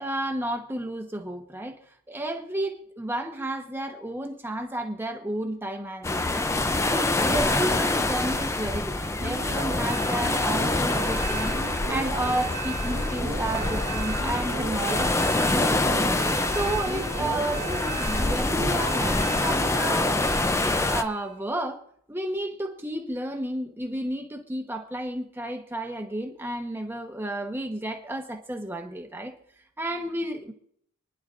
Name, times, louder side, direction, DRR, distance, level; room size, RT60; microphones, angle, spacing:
voice 1, 0.0-1.8 2.1-11.6 11.9-16.1 16.5-20.2 20.9-21.8 22.1-29.3 29.8-30.5, right 1 dB, 10° right, 3 dB, 1.0 m, -32 dB
sound 1, 6.0-21.0, left 2 dB, 10° left, 0.4 m, -26 dB
sound 2, 9.2-21.3, right 4 dB, 35° right, 1.1 m, -36 dB
28.0 x 10.5 x 2.5 m, 0.67 s
head